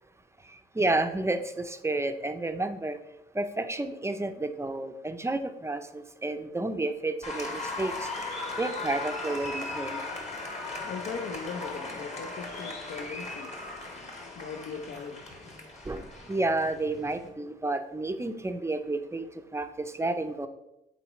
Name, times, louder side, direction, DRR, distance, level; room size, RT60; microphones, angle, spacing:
voice 1, 0.7-3.0 3.3-8.1 8.6-10.0 15.9-16.0 16.3-19.2 19.5-20.5, right 2 dB, 15° right, 8 dB, 0.5 m, -30 dB
Applause, 7.2-17.3, left 2 dB, 35° left, 1.5 m, -38 dB
voice 2, 10.5-15.6, left 5 dB, 65° left, 4 dB, 0.7 m, -40 dB
8.1 x 4.0 x 3.1 m, 0.91 s
cardioid pair, 90°, 20 cm